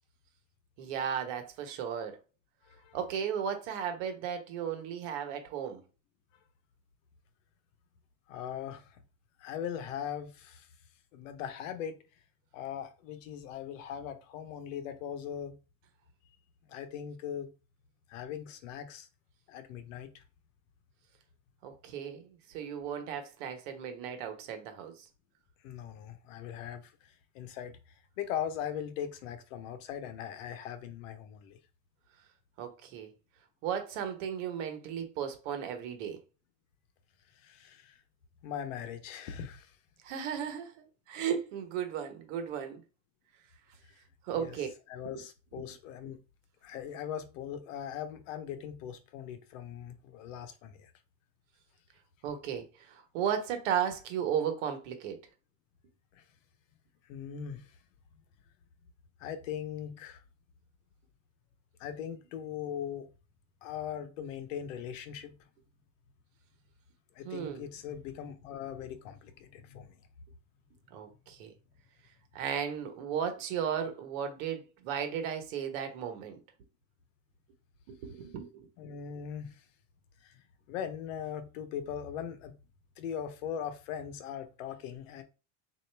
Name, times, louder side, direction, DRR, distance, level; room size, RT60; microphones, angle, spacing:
voice 1, 0.8-2.2 2.9-5.8 21.6-25.0 32.6-33.1 33.6-36.2 40.0-42.8 44.2-44.7 45.5-45.7 52.2-55.2 67.2-67.6 70.9-71.5 72.3-76.4 77.9-78.7, right 8 dB, 80° right, 1.0 m, -35 dB
voice 2, 2.7-3.0 8.3-9.0 9.4-10.7 11.1-12.0 12.5-15.6 16.6-17.5 18.1-19.1 19.5-20.2 25.6-27.8 28.2-31.6 37.3-38.0 38.4-39.8 44.3-44.6 44.9-46.2 46.6-50.9 56.1-56.2 57.1-57.8 59.2-60.2 61.8-63.1 63.6-65.3 67.1-70.0 78.8-79.6 80.2-82.5 83.0-85.2, left 9 dB, 90° left, 0.8 m, -40 dB
3.9 x 2.6 x 3.3 m
supercardioid pair, 125°, 37 cm